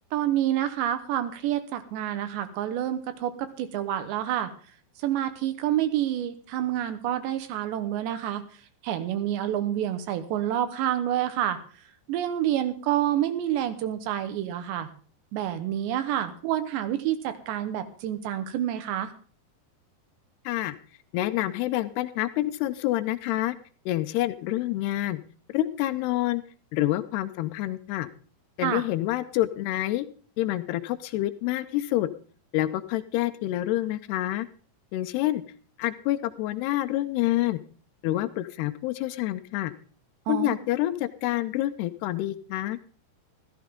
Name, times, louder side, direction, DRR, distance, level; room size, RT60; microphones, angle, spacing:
voice 1, 0.1-4.5 5.0-8.4 8.8-11.6 12.1-14.9 15.3-19.1 28.6-28.8 40.3-40.6, right 11 dB, 75° right, 10 dB, 3.1 m, -28 dB
voice 2, 20.5-20.8 21.1-23.6 23.9-25.2 25.5-26.4 26.7-28.1 28.6-30.1 30.4-32.1 32.5-34.5 34.9-35.4 35.8-37.6 38.0-39.7 40.3-42.8, left 15 dB, 80° left, 13 dB, 2.5 m, -27 dB
14.5 x 14.5 x 3.6 m, 0.41 s
omnidirectional pair, 5.3 m